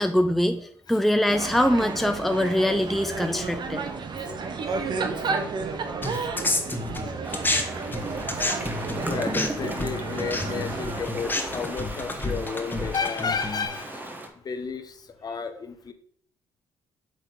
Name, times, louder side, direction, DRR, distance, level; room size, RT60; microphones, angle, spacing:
voice 1, 0.0-3.8, left 1 dB, ahead, 8 dB, 0.5 m, -23 dB
sound 1, 1.3-11.0, right 4 dB, 50° right, 0.9 m, -32 dB
voice 2, 4.1-4.9 5.2-5.3 6.2-6.3 7.0-7.1 8.8-15.9, left 5 dB, 40° left, 8 dB, 0.9 m, -33 dB
sound 2, 6.0-7.6 7.9-13.7, left 2 dB, 20° left, 1.2 m, -29 dB
sound 3, 7.2-14.3, right 1 dB, 20° right, 1.3 m, -35 dB
7.9 x 3.6 x 3.8 m, 0.63 s
hypercardioid pair, 55°, 10 cm